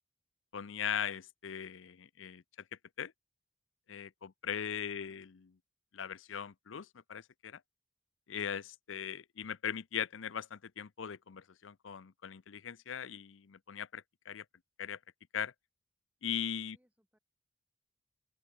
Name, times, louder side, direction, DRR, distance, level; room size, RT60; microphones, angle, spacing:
voice 1, 0.5-2.4 3.0-3.1 3.9-5.4 5.9-7.6 8.3-14.4 14.8-15.0 15.3-15.5 16.2-16.8, left 8 dB, 85° left, 0.6 m, -39 dB
voice 2, 16.6-17.2, equal, 5° right, 7.6 m, -75 dB
open air
head